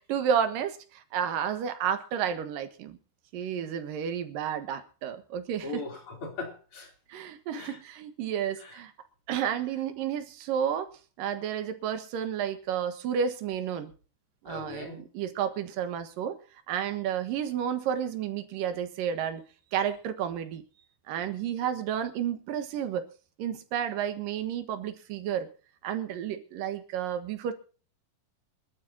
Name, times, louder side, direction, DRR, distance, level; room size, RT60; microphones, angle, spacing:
voice 1, 0.0-3.0 3.3-5.8 7.1-8.9 9.3-10.9 11.2-13.9 14.4-16.4 16.7-19.4 19.7-20.6 21.1-23.1 23.4-25.5 25.8-27.5, right 8 dB, 80° right, 3.0 m, -31 dB
voice 2, 5.6-6.9 7.5-7.8 8.6-8.7 14.5-15.0, left 3 dB, 40° left, 3.9 m, -39 dB
26.0 x 12.0 x 2.8 m
omnidirectional pair, 4.0 m